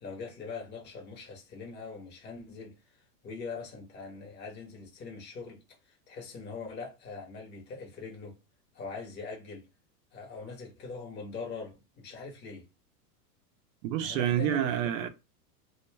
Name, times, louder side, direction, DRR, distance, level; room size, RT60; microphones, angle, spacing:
voice 1, 0.0-2.7 3.2-8.4 8.7-9.6 10.1-12.7 14.0-14.7, left 4 dB, 20° left, 0.8 m, -42 dB
voice 2, 13.8-15.1, right 10 dB, 55° right, 0.6 m, -28 dB
2.3 x 2.1 x 3.2 m
hypercardioid pair, 115°, 48 cm